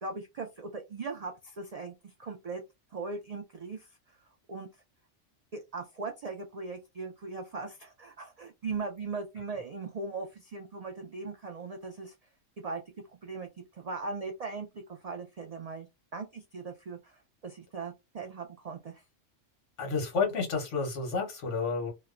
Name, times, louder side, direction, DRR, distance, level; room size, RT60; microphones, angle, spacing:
voice 1, 0.0-2.6 2.9-4.2 4.5-4.7 5.5-12.1 12.6-12.8 13.2-13.5 13.7-15.9 16.1-19.0, right 4 dB, 85° right, 0.3 m, -39 dB
voice 2, 19.8-21.9, left 4 dB, 75° left, 1.3 m, -30 dB
2.9 x 2.1 x 2.4 m
omnidirectional pair, 1.3 m